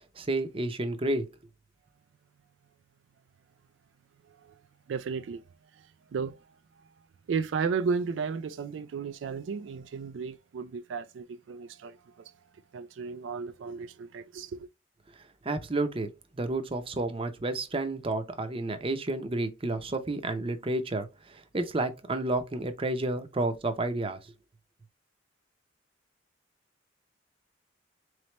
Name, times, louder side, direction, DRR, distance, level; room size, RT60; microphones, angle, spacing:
voice 1, 0.1-1.3 15.4-24.3, right 2 dB, 30° right, 0.6 m, -31 dB
voice 2, 4.2-4.6 4.9-5.4 5.7-6.9 7.3-12.3 12.7-14.7, right 5 dB, 90° right, 0.3 m, -34 dB
4.1 x 3.2 x 2.9 m
head